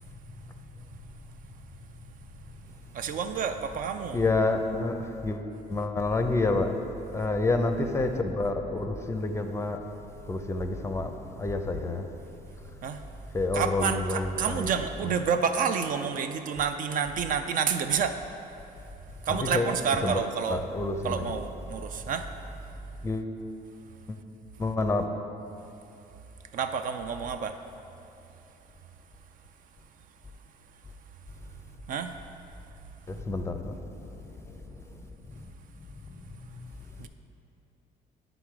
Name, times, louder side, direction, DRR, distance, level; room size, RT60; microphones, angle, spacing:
voice 1, 2.9-4.2 12.8-13.0 13.5-18.2 19.3-20.6 21.0-22.3 26.5-27.6 31.9-32.1 37.0-37.1, right 6 dB, 55° right, 8 dB, 0.4 m, -29 dB
voice 2, 4.1-5.0 5.2-5.4 5.7-6.7 7.1-9.8 10.3-11.1 11.4-12.1 13.3-14.7 19.3-19.7 20.0-20.2 20.5-21.2 23.0-23.3 24.1-24.2 24.6-25.1 33.1-33.8 34.1-34.5, left 3 dB, 15° left, 6 dB, 0.5 m, -28 dB
9.1 x 3.9 x 4.8 m, 2.9 s
cardioid pair, 110°, 17 cm